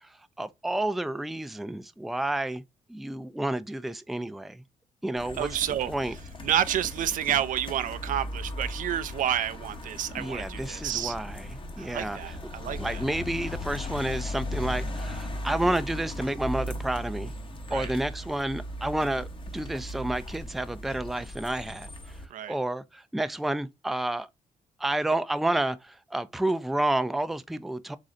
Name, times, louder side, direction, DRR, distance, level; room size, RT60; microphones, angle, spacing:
voice 1, 0.0-2.6 2.9-4.6 5.0-5.5 5.9-6.2 10.2-12.3 12.8-17.3 17.7-24.3 24.8-28.0, right 1 dB, ahead, 0.3 m, -30 dB
sound 1, 5.2-22.2, left 1 dB, 35° left, 0.9 m, -37 dB
voice 2, 5.4-5.9 6.4-11.1 11.8-13.0 17.7-17.9 22.3-22.5, right 11 dB, 70° right, 0.4 m, -29 dB
3.8 x 3.1 x 2.5 m
cardioid pair, 75°, 14 cm